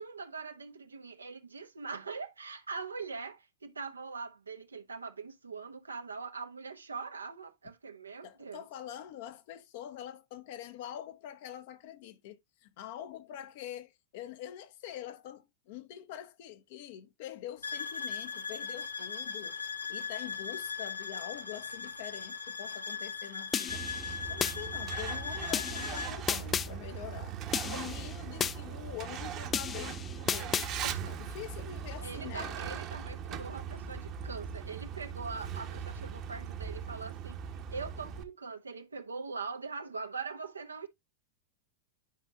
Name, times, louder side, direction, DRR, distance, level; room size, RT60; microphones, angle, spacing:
voice 1, 0.0-8.6 27.7-27.8 30.8-31.2 32.0-37.4 37.7-40.9, right 4 dB, 75° right, 1.1 m, -42 dB
voice 2, 8.2-19.6 19.9-23.8 24.3-27.4 27.6-30.7 31.1-32.6, left 11 dB, 50° left, 1.0 m, -45 dB
sound 1, 17.6-26.1, left 5 dB, 80° left, 0.8 m, -39 dB
sound 2, 23.5-24.6 25.5-26.7 27.5-28.6 29.5-30.7, left 8 dB, 25° left, 0.4 m, -33 dB
Truck, 23.7-38.2, right 7 dB, 35° right, 1.1 m, -40 dB
10.5 x 5.4 x 2.3 m
figure-of-eight pair, 90°, 0 cm